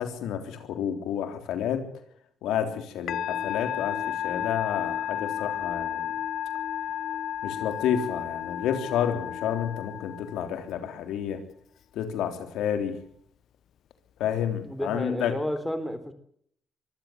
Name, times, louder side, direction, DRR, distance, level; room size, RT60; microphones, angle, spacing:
voice 1, 0.0-1.8 2.4-6.1 7.4-11.4 11.9-13.0 14.2-15.4, left 9 dB, 85° left, 8 dB, 3.6 m, -30 dB
Musical instrument, 3.1-10.7, left 10 dB, 70° left, 0.9 m, -32 dB
voice 2, 14.6-16.1, equal, 5° left, 11 dB, 3.5 m, -31 dB
24.0 x 15.0 x 8.0 m, 0.65 s
cardioid pair, 90°, 0 cm